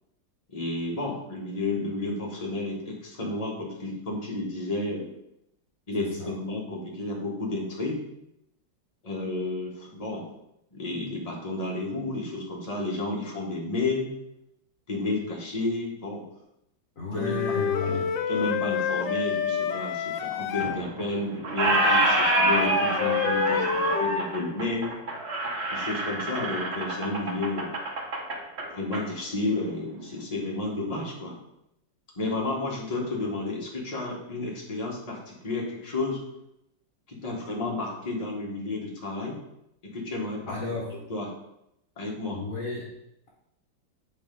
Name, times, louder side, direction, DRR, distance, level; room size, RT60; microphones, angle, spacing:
voice 1, 0.5-5.1 5.9-8.0 9.0-10.2 10.7-14.1 14.9-16.2 17.1-24.9 25.7-27.8 28.7-31.4 32.1-36.2 37.1-39.4 39.8-40.5 40.9-41.3 42.0-42.4, left 2 dB, 20° left, -3 dB, 1.4 m, -31 dB
voice 2, 17.0-18.1 40.5-40.9 42.3-42.9, left 3 dB, 50° left, -4 dB, 1.4 m, -33 dB
Wind instrument woodwind instrument, 17.2-20.8 21.7-24.2, left 8 dB, 85° left, 1.3 m, -28 dB
Squeak, 20.6-21.2 21.4-29.0, right 2 dB, 40° right, 1.1 m, -27 dB
8.1 x 4.3 x 3.9 m, 0.83 s
omnidirectional pair, 2.0 m